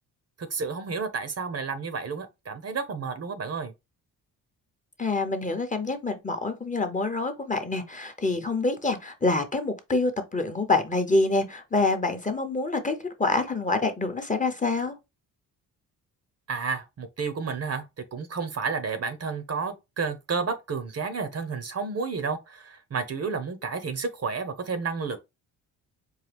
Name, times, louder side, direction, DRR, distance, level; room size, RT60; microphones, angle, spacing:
voice 1, 0.4-3.7 16.5-17.8 18.1-25.2, right 5 dB, 40° right, 0.8 m, -31 dB
voice 2, 5.0-15.0, left 3 dB, 20° left, 0.8 m, -26 dB
4.6 x 2.3 x 3.4 m
cardioid pair, 80°, 38 cm